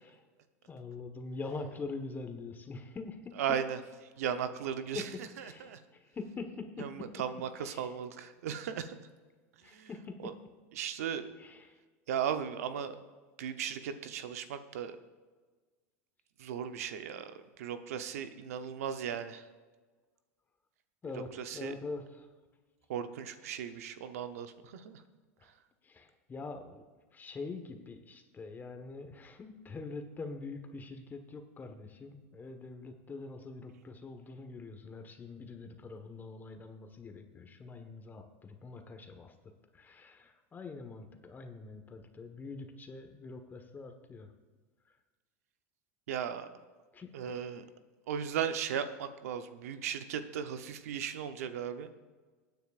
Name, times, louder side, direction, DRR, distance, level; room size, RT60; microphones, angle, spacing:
voice 1, 0.7-3.3 4.9-5.0 5.4-7.1 7.6-7.9 9.6-10.3 11.4-11.7 21.0-22.3 25.8-26.8 27.1-39.3 39.7-44.3 46.9-47.5, left 3 dB, 25° left, 6 dB, 1.3 m, -44 dB
voice 2, 3.4-3.8 4.2-5.1 5.4-5.8 6.8-9.0 9.6-9.9 10.2-10.3 10.7-11.2 12.1-13.0 13.4-15.0 16.4-19.5 21.1-21.7 22.9-25.0 46.1-46.5 47.1-47.6 48.1-51.9, right 8 dB, 85° right, 9 dB, 0.9 m, -36 dB
20.0 x 9.3 x 2.5 m, 1.4 s
supercardioid pair, 105°, 8 cm